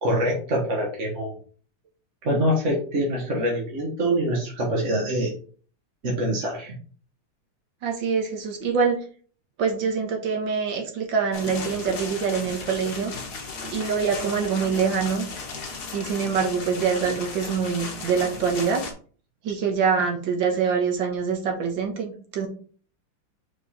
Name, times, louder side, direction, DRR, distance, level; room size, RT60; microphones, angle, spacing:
voice 1, 0.0-1.4 2.2-5.3 6.0-6.8, equal, 40° right, -2 dB, 1.4 m, -25 dB
voice 2, 7.8-9.0 9.6-13.1 13.7-15.3 15.9-18.8 19.4-22.5, right 6 dB, 65° right, 3 dB, 1.9 m, -25 dB
sound 1, 11.3-18.9, left 4 dB, 50° left, 1.7 m, -36 dB
5.2 x 4.6 x 4.2 m, 0.43 s
omnidirectional pair, 2.3 m